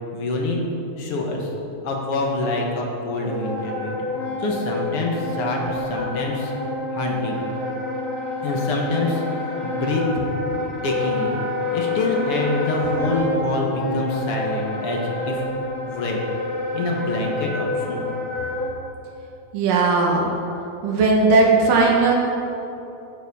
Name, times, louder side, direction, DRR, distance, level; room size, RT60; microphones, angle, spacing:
voice 1, 0.1-0.7 1.0-1.5 1.8-4.1 4.4-6.5 6.9-7.5 8.4-10.2 10.8-11.4 11.7-15.4 15.9-16.2 16.7-18.1, left 2 dB, 55° left, 0 dB, 2.0 m, -25 dB
Wind instrument woodwind instrument, 3.2-18.7, left 2 dB, 30° left, 1.7 m, -28 dB
voice 2, 19.5-20.3 20.8-22.1, right 3 dB, 90° right, -1 dB, 3.0 m, -17 dB
14.0 x 7.2 x 5.5 m, 3.0 s
omnidirectional pair, 3.8 m